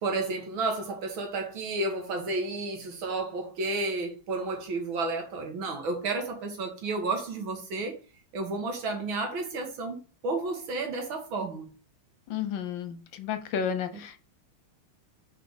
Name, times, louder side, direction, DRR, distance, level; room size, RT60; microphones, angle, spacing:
voice 1, 0.0-8.0 8.3-11.7, right 3 dB, 70° right, 2.4 m, -31 dB
voice 2, 12.3-14.3, left 7 dB, 70° left, 1.4 m, -32 dB
5.9 x 4.9 x 5.2 m
omnidirectional pair, 2.3 m